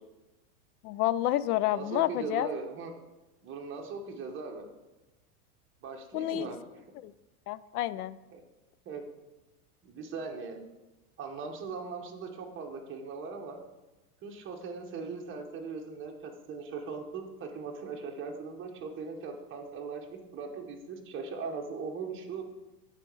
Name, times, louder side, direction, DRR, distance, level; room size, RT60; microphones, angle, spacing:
voice 1, 0.8-2.5 6.1-6.5 7.0-7.1 7.5-8.2, left 14 dB, 70° left, 16 dB, 0.5 m, -29 dB
voice 2, 1.7-2.9 3.4-4.6 5.8-6.6 8.3-8.4 8.8-9.0 9.8-10.6 11.2-13.6 14.2-22.4, right 4 dB, 25° right, 3 dB, 1.1 m, -39 dB
8.9 x 4.2 x 6.1 m, 1.1 s
supercardioid pair, 135°, 47 cm